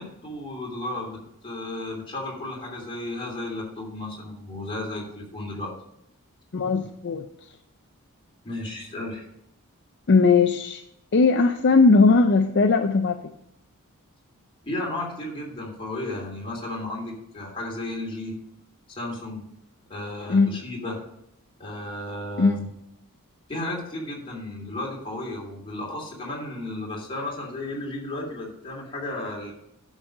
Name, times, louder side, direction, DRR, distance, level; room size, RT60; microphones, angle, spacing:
voice 1, 0.0-5.7 8.4-9.3 14.6-18.4 18.9-19.5 19.9-21.0 21.6-22.7 23.5-29.5, left 1 dB, 25° left, -3 dB, 2.8 m, -34 dB
voice 2, 6.5-7.3 10.1-10.8 11.1-13.2 20.3-20.5 22.4-22.5, left 4 dB, 50° left, 6 dB, 0.5 m, -18 dB
10.0 x 6.2 x 5.3 m, 0.79 s
head